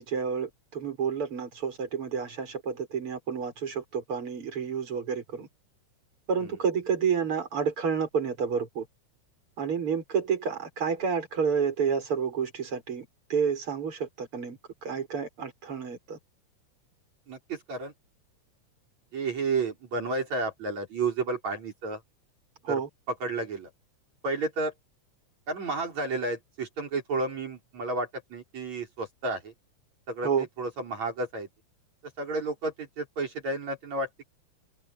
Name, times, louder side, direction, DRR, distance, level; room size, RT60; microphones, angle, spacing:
voice 1, 0.0-5.5 6.3-8.9 9.6-16.2 22.6-22.9 30.2-30.5, right 6 dB, 45° right, 6.8 m, -30 dB
voice 2, 17.3-17.9 19.1-22.0 22.7-22.8 23.1-23.7 24.2-24.7 25.5-29.5 30.1-31.5 32.2-34.1, right 3 dB, 65° right, 6.7 m, -31 dB
open air
omnidirectional pair, 3.5 m